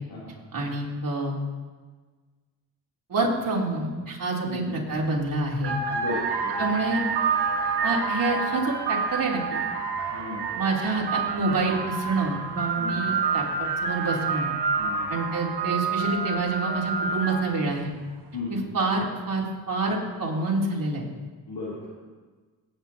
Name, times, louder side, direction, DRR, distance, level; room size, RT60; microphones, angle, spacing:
voice 1, 0.5-1.3 3.1-5.7 6.6-7.0 7.8-9.6 10.5-14.5 15.1-17.9 18.5-21.0, right 3 dB, 45° right, -3 dB, 3.1 m, -27 dB
sound 1, 4.9-5.1 5.6-17.7, right 5 dB, 65° right, 1.4 m, -28 dB
voice 2, 5.9-6.6 10.1-10.5 12.8-12.9 14.8-15.1 18.3-18.7 21.5-21.9, left 3 dB, 55° left, -8 dB, 3.1 m, -35 dB
18.5 x 8.7 x 2.8 m, 1.4 s
supercardioid pair, 40°, 44 cm